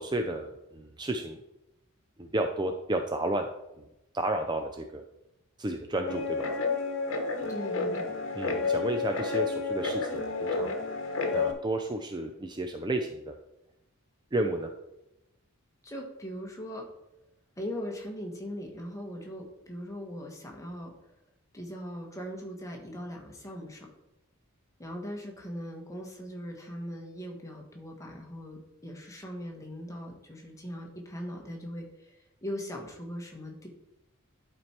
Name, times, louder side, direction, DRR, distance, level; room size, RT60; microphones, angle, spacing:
voice 1, 0.0-1.4 2.2-3.5 3.8-3.9 4.1-5.0 5.6-6.5 8.3-10.7 11.3-13.4 14.3-14.7, right 1 dB, 20° right, 5 dB, 0.5 m, -32 dB
Guitar, 6.1-11.5, left 4 dB, 60° left, 1.2 m, -30 dB
voice 2, 7.5-8.1 15.8-16.9 17.6-20.9 21.5-23.9 24.8-33.7, equal, 15° left, 0 dB, 1.4 m, -40 dB
11.0 x 4.5 x 4.4 m, 0.91 s
head